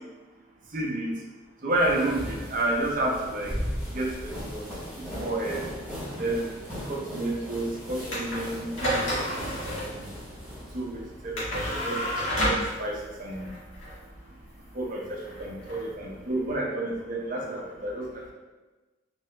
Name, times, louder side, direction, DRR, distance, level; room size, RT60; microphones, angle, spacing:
voice 1, 0.7-1.1 1.6-3.6 3.9-4.6 5.2-5.7 6.1-6.5 6.9-9.1 9.7-10.1 10.7-12.0 12.4-13.5 14.7-18.1, right 2 dB, 40° right, -1 dB, 0.6 m, -30 dB
sound 1, 1.7-11.7, equal, 10° left, 1.0 m, -38 dB
sound 2, 8.1-16.5, equal, 70° left, 1.3 m, -32 dB
3.7 x 2.6 x 3.2 m, 1.2 s
head